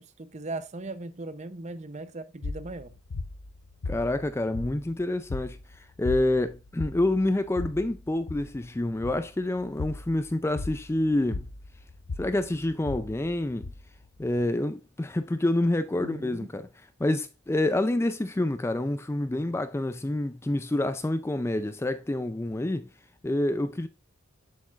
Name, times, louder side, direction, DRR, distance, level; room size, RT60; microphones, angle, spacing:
voice 1, 0.0-2.9 16.0-16.5, right 2 dB, 30° right, 0.6 m, -38 dB
sound 1, 2.4-14.4, left 3 dB, 90° left, 0.8 m, -38 dB
voice 2, 3.9-11.5 12.2-13.7 14.2-16.7 17.0-22.9 23.2-23.9, left 1 dB, 10° left, 0.3 m, -27 dB
8.4 x 7.7 x 2.4 m
head